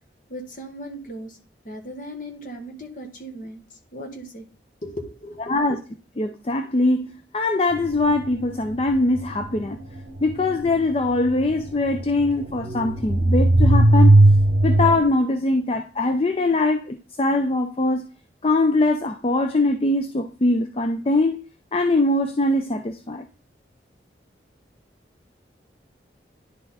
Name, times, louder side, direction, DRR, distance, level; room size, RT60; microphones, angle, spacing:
voice 1, 0.3-1.4 1.6-3.6 3.9-4.4 4.8-5.6, equal, 50° left, 1.4 m, -37 dB
voice 2, 5.5-5.8 6.2-9.8 10.2-14.2 14.6-18.0 18.4-21.4 21.7-23.3, left 2 dB, 30° left, 0.4 m, -22 dB
sound 1, 7.8-15.0, right 1 dB, 60° right, 0.8 m, -18 dB
10.5 x 4.0 x 4.1 m
head